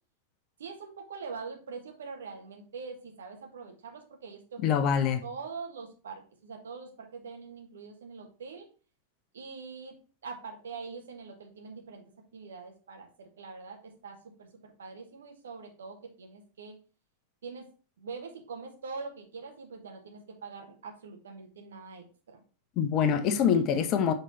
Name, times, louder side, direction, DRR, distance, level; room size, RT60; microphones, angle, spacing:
voice 1, 0.6-4.9 5.2-8.7 9.3-10.0 10.2-12.0 12.3-16.8 17.4-17.7 18.0-22.4, right 4 dB, 65° right, 1.5 m, -43 dB
voice 2, 4.6-5.2 22.8-24.1, left 7 dB, 35° left, 0.8 m, -25 dB
6.5 x 3.9 x 4.1 m
figure-of-eight pair, 90°, 0 cm